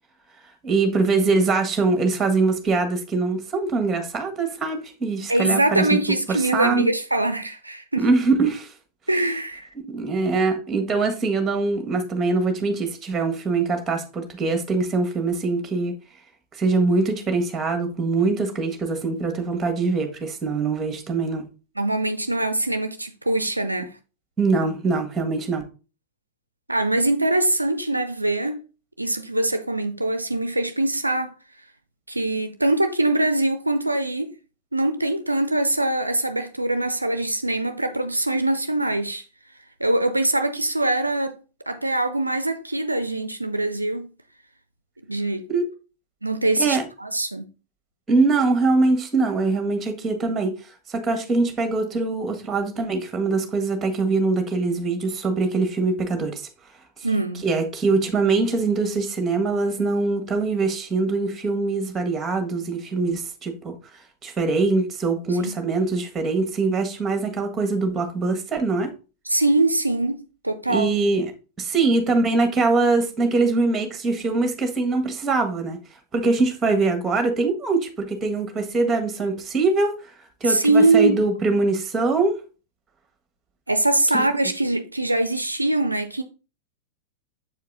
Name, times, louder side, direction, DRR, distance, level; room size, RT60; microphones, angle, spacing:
voice 1, 0.6-5.8 6.3-6.9 8.0-8.7 9.9-15.9 16.6-21.4 24.4-25.6 45.5-45.7 46.6-46.9 48.1-50.5 50.9-56.4 57.4-63.8 64.2-68.9 70.7-71.3 71.6-75.8 76.1-80.1 80.4-82.4 84.1-84.2, right 3 dB, 15° right, 1.6 m, -23 dB
voice 2, 5.3-8.1 9.1-9.7 21.8-23.9 26.7-28.6 29.0-31.4 32.1-34.3 34.7-39.2 39.8-41.4 41.7-44.1 45.1-45.5 46.2-47.5 57.0-57.4 65.4-65.6 69.3-71.0 80.5-81.2 83.7-86.2, right 2 dB, 85° right, 0.5 m, -23 dB
7.6 x 4.7 x 3.7 m
figure-of-eight pair, 90°, 0 cm